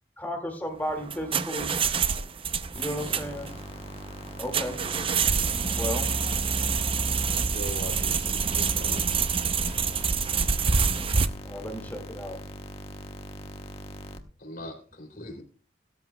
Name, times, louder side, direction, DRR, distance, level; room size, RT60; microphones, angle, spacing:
voice 1, 0.2-1.7 2.8-3.5 4.4-4.8 5.8-6.1 11.4-12.4, equal, 10° left, 2.1 m, -34 dB
sound 1, 0.8-11.3, right 5 dB, 30° right, 0.6 m, -27 dB
voice 2, 1.6-2.5 5.0-5.2 6.1-7.0, right 1 dB, 60° right, 4.3 m, -49 dB
sound 2, 2.7-14.2, equal, 35° left, 1.0 m, -41 dB
voice 3, 7.5-9.0 10.0-10.1 14.4-15.4, left 1 dB, 55° left, 3.1 m, -40 dB
17.0 x 13.0 x 2.3 m
head